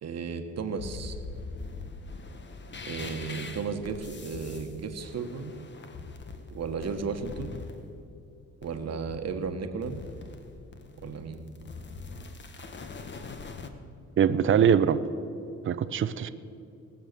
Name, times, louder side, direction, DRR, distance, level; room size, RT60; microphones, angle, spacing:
voice 1, 0.0-1.1 2.8-5.5 6.5-7.5 8.6-10.0 11.0-11.4, right 5 dB, 60° right, 7 dB, 1.4 m, -34 dB
sound 1, 0.8-7.8 8.6-9.4 9.8-13.7, left 4 dB, 35° left, 1.2 m, -42 dB
voice 2, 14.2-15.0 15.7-16.3, right 8 dB, 40° right, 13 dB, 0.6 m, -22 dB
19.5 x 7.4 x 6.7 m, 2.6 s
cardioid pair, 90°, 30 cm